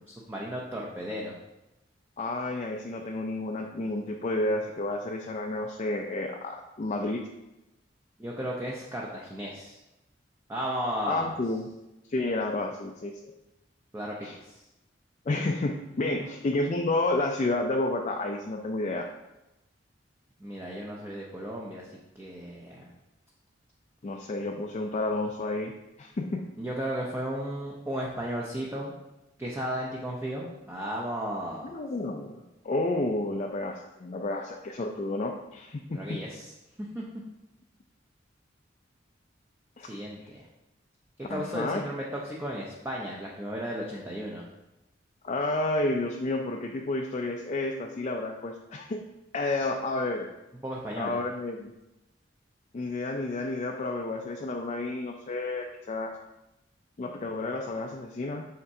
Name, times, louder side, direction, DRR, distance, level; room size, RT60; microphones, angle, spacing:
voice 1, 0.0-1.3 8.2-9.8 10.5-11.4 13.9-14.6 20.4-22.9 26.6-28.9 29.4-31.8 35.9-36.5 36.8-37.0 39.8-40.5 41.3-44.4 50.6-51.2, equal, 15° right, -3 dB, 0.6 m, -35 dB
voice 2, 2.2-7.3 11.1-11.7 12.1-13.3 14.2-14.4 15.3-19.1 24.0-25.7 26.0-26.4 31.6-36.2 39.8-39.9 41.3-41.8 45.2-49.0 49.3-50.3 51.0-51.7 52.7-56.1 57.0-58.5, left 2 dB, 35° left, 1 dB, 0.4 m, -30 dB
6.4 x 5.7 x 2.7 m, 0.97 s
head